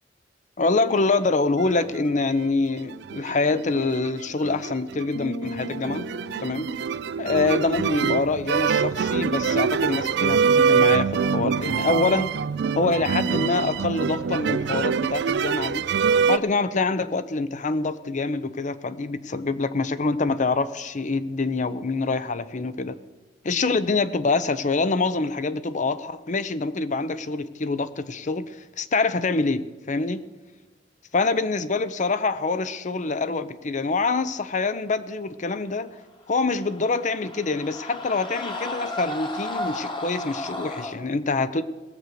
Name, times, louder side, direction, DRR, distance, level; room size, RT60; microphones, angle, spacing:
voice 1, 0.6-6.1 6.4-6.7 7.2-12.3 12.7-15.9 16.3-23.0 23.4-30.2 31.1-35.9 36.3-41.6, left 3 dB, 45° left, 0.6 m, -25 dB
sound 1, 1.7-2.5 2.8-16.4, right 6 dB, 65° right, 0.4 m, -24 dB
sound 2, 5.1-8.9, right 1 dB, 80° left, 2.9 m, -40 dB
sound 3, 36.6-41.0, left 1 dB, 25° left, 1.5 m, -33 dB
18.5 x 7.7 x 6.7 m
head